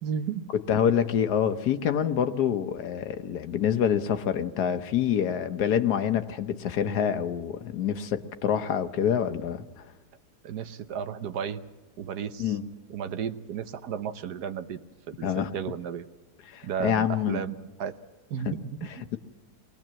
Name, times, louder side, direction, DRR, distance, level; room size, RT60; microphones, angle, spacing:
voice 1, 0.0-0.5 10.4-11.6 12.0-12.6 12.9-14.8 15.1-16.1 16.6-17.9 18.3-19.1, right 8 dB, 70° right, 1.4 m, -34 dB
voice 2, 0.7-9.6 12.4-12.6 15.2-15.5 16.5-17.4 18.4-18.5, left 8 dB, 70° left, 1.5 m, -26 dB
23.0 x 18.0 x 7.6 m
omnidirectional pair, 1.8 m